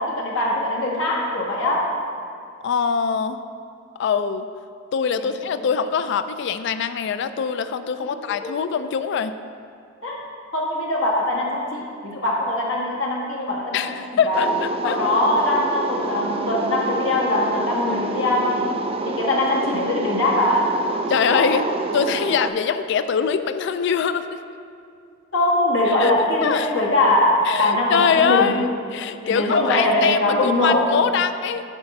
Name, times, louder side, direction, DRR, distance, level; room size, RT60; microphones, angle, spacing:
voice 1, 0.0-1.9 5.2-5.3 8.0-8.5 10.0-10.2 10.5-14.0 14.2-14.4 14.8-18.8 19.0-20.7 21.3-21.4 25.3-28.6 29.2-31.0, left 1 dB, 85° left, -2 dB, 1.5 m, -22 dB
voice 2, 2.6-3.4 4.0-4.5 4.9-9.3 13.7-14.5 14.8-15.0 21.1-21.6 21.9-24.4 25.9-26.1 26.4-26.7 27.4-31.6, left 6 dB, 65° left, 11 dB, 0.3 m, -23 dB
sound 1, 14.3-22.5, right 3 dB, 30° right, 0.3 m, -28 dB
8.9 x 4.2 x 5.8 m, 2.5 s
head